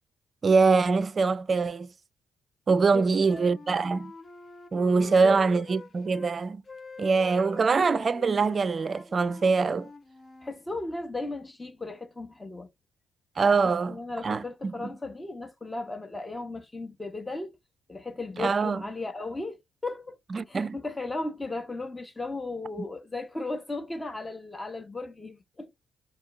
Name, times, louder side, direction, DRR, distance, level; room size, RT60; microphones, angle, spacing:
voice 1, 0.4-1.9 2.7-4.1 4.7-6.6 7.0-9.9 13.4-14.0 14.2-14.9 18.4-18.8 20.3-20.8, right 4 dB, 40° right, 0.5 m, -24 dB
voice 2, 2.9-3.5 5.0-5.4 10.4-12.7 13.9-17.6 17.9-25.9, left 2 dB, 20° left, 1.2 m, -36 dB
Wind instrument woodwind instrument, 3.0-6.3 6.6-10.5, left 4 dB, 35° left, 0.7 m, -46 dB
4.4 x 2.9 x 3.0 m
hypercardioid pair, 45°, 0 cm